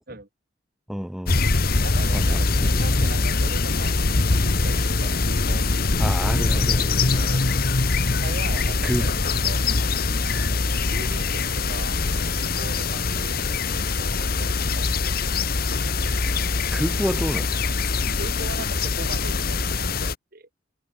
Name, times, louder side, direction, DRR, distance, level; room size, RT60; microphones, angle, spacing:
voice 1, 0.9-1.5 2.1-3.0 6.0-7.3 8.8-9.1 16.7-17.5, equal, 5° right, 1.9 m, -29 dB
sound 1, 1.3-20.1, left 3 dB, 50° left, 1.2 m, -23 dB
voice 2, 1.8-6.6 7.1-7.6 8.2-9.6 10.2-10.6 10.9-11.4 11.7-12.0 12.3-14.9 18.2-20.5, right 3 dB, 50° right, 1.8 m, -40 dB
head